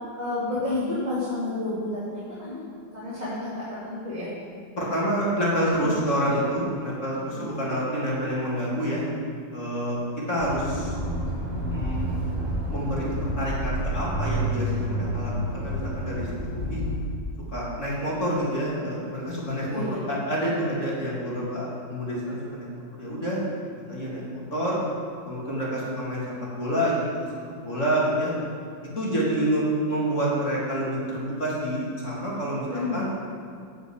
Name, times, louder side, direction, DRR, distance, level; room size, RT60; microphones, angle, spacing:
voice 1, 0.1-4.3 5.8-5.9 7.3-7.8 19.7-20.2 32.7-33.0, left 2 dB, 20° right, -10 dB, 3.0 m, -31 dB
voice 2, 4.8-9.0 9.5-10.0 10.3-10.9 11.7-12.1 12.7-16.8 17.5-23.4 23.9-24.8 25.3-26.2 26.5-27.3 27.6-28.3 28.9-33.1, equal, 40° left, -6 dB, 3.3 m, -28 dB
Accelerating revving vroom, 10.4-17.0, equal, 20° left, 3.8 m, -29 dB
12.5 x 7.0 x 8.3 m, 2.3 s
omnidirectional pair, 2.1 m